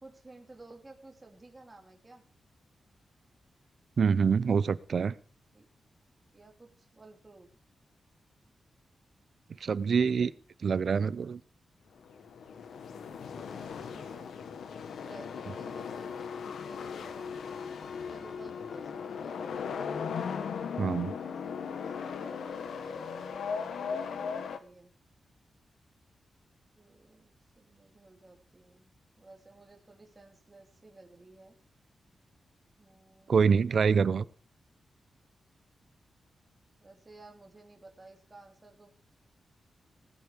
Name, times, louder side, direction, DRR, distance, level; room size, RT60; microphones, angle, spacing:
voice 1, 0.0-2.3 5.5-5.7 6.3-7.5 13.1-14.4 15.0-17.5 18.1-19.7 21.0-24.9 26.8-31.6 32.8-33.4 36.8-38.9, right 2 dB, 20° right, 2 dB, 2.8 m, -55 dB
voice 2, 4.0-5.1 9.6-10.3 10.6-11.4 20.8-21.1 33.3-34.3, right 6 dB, 50° right, 18 dB, 0.7 m, -25 dB
sound 1, 12.0-24.6, left 6 dB, 80° left, 1.5 m, -38 dB
19.5 x 9.0 x 5.1 m, 0.38 s
wide cardioid pair, 150°, 0 cm